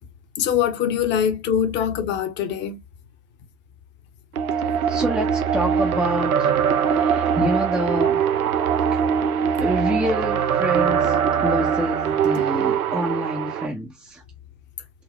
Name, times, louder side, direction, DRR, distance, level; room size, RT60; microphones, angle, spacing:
voice 1, 0.4-2.8, left 8 dB, 25° left, 0.8 m, -23 dB
sound 1, 4.4-13.7, right 7 dB, 85° right, 0.7 m, -22 dB
voice 2, 4.9-6.5 6.9-8.2 8.9-9.0 9.6-14.2, equal, 5° right, 0.5 m, -27 dB
4.0 x 2.0 x 2.7 m
hypercardioid pair, 110°, 42 cm